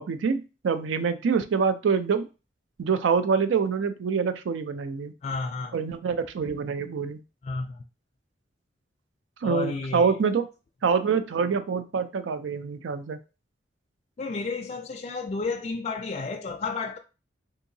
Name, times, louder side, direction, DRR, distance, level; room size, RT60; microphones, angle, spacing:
voice 1, 0.0-2.3 2.8-5.1 5.7-7.2 9.4-10.5 10.8-13.2, right 5 dB, 85° right, 0.4 m, -25 dB
voice 2, 5.2-5.8 7.4-7.8 9.4-10.1 14.2-17.0, left 4 dB, 35° left, 0.3 m, -32 dB
3.7 x 2.8 x 2.6 m
head